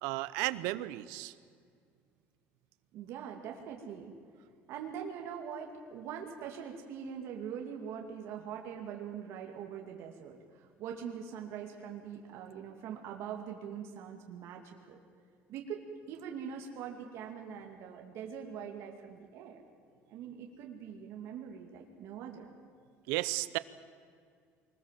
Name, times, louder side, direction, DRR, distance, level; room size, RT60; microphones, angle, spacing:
voice 1, 0.0-1.3 23.1-23.6, right 18 dB, 85° right, 16 dB, 0.9 m, -34 dB
voice 2, 2.9-4.1 4.7-15.0 15.5-19.6 20.1-22.5, right 8 dB, 65° right, 1 dB, 2.6 m, -43 dB
24.5 x 20.0 x 7.7 m, 2.2 s
cardioid pair, 140°, 5 cm